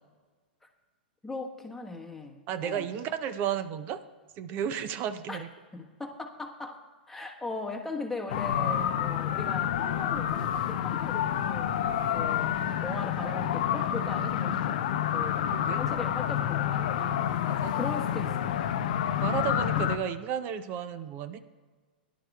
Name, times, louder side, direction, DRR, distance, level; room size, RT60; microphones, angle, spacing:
voice 1, 1.2-2.9 5.3-5.4 5.7-6.8 7.1-17.3 17.7-18.9 19.8-19.9, left 3 dB, 5° left, 2 dB, 1.3 m, -39 dB
voice 2, 2.5-4.0 4.4-5.5 15.5-15.8 17.4-17.7 19.2-21.4, right 9 dB, 35° right, 12 dB, 0.7 m, -33 dB
sound 1, 8.3-20.0, left 10 dB, 55° left, 0.7 m, -28 dB
21.5 x 11.5 x 2.4 m, 1.4 s
figure-of-eight pair, 105°, 5 cm